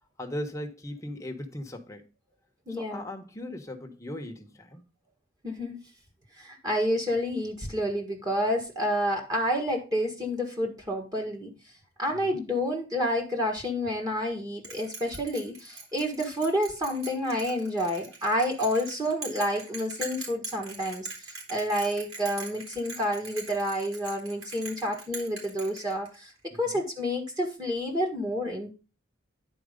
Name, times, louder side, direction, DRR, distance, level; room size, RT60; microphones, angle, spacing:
voice 1, 0.2-2.1 2.7-4.8 12.1-12.4 26.5-26.8, left 1 dB, 15° left, 1.1 m, -38 dB
voice 2, 2.7-3.1 5.4-5.8 6.4-11.5 12.0-26.3 26.6-28.7, equal, 20° right, 1.6 m, -29 dB
Bell, 14.6-26.3, right 3 dB, 90° right, 4.1 m, -42 dB
10.0 x 4.5 x 5.2 m
head